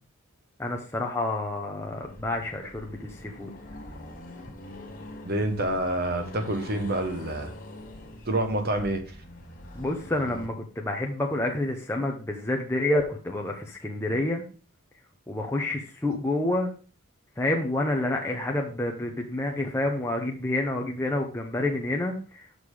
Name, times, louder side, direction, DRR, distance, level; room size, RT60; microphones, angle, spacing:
voice 1, 0.6-3.5 9.8-14.4 15.3-16.7 17.4-22.5, left 1 dB, 10° left, 0 dB, 0.8 m, -28 dB
Accelerating revving vroom, 1.8-10.5, left 1 dB, 35° left, 1.9 m, -44 dB
voice 2, 5.2-7.5 8.3-9.0, right 1 dB, 45° right, 6 dB, 1.1 m, -27 dB
6.6 x 5.6 x 4.8 m, 0.36 s
head